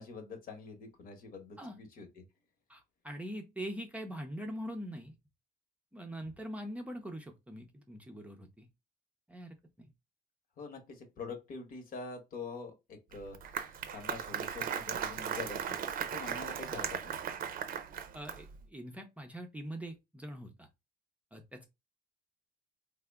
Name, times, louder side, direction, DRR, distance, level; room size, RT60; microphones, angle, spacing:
voice 1, 0.0-2.2 10.6-17.2, left 4 dB, 55° left, 1.0 m, -45 dB
voice 2, 2.7-5.1 5.9-8.7 9.3-9.9 18.1-20.7 21.3-21.7, equal, 10° right, 0.5 m, -43 dB
Applause, 13.1-18.6, right 8 dB, 55° right, 0.6 m, -37 dB
3.4 x 2.1 x 3.3 m
cardioid pair, 110°, 17 cm